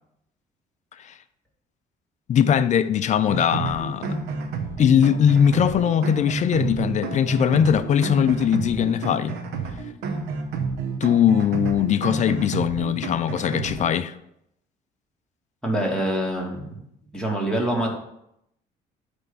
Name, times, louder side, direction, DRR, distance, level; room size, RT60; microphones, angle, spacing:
voice 1, 2.3-4.2 4.8-9.3 11.0-14.1, left 8 dB, 45° left, 0.5 m, -20 dB
sound 1, 3.3-13.9, right 4 dB, 80° right, 1.0 m, -30 dB
voice 2, 15.6-16.8 17.1-17.9, right 1 dB, 5° left, 2.0 m, -25 dB
9.2 x 3.5 x 5.5 m
cardioid pair, 110°, 17 cm